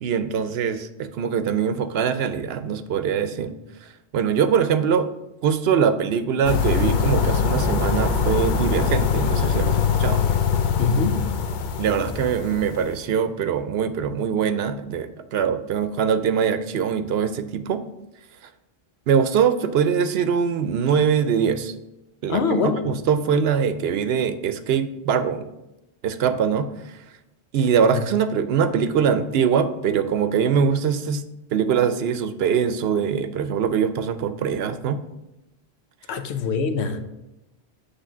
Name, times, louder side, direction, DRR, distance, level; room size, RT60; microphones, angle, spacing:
voice 1, 0.0-3.5 3.8-5.1 5.4-10.2 11.8-17.8 19.1-21.7 22.2-25.5 26.0-27.0 27.5-31.2 31.5-35.0, right 7 dB, 75° right, 11 dB, 0.8 m, -22 dB
sound 1, 6.4-12.8, left 6 dB, 55° left, 0.6 m, -22 dB
voice 2, 10.8-11.2 22.3-22.8 27.9-28.0 36.1-37.0, left 5 dB, 85° left, 8 dB, 1.0 m, -23 dB
8.3 x 3.2 x 6.1 m, 0.93 s
omnidirectional pair, 1.1 m